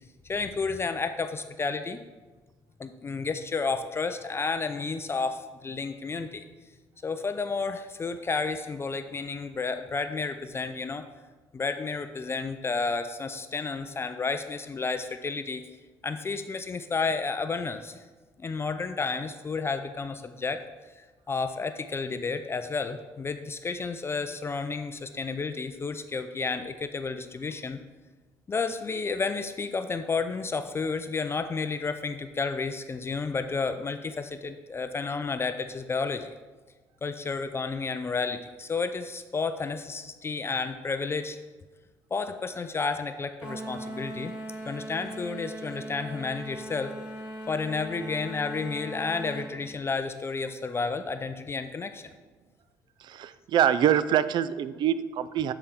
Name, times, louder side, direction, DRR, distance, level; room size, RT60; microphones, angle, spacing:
voice 1, 0.2-2.0 2.8-6.4 7.0-11.0 11.5-15.6 16.0-18.0 18.4-20.6 21.0-27.8 28.5-36.3 37.0-41.4 42.1-44.3 44.7-46.9 47.5-52.1, left 4 dB, 30° left, 9 dB, 0.4 m, -31 dB
sound 1, 43.4-49.5, right 1 dB, 10° right, 2.2 m, -39 dB
voice 2, 53.0-55.5, right 10 dB, 55° right, 15 dB, 0.3 m, -25 dB
8.5 x 4.3 x 3.6 m, 1.3 s
supercardioid pair, 75°, 9 cm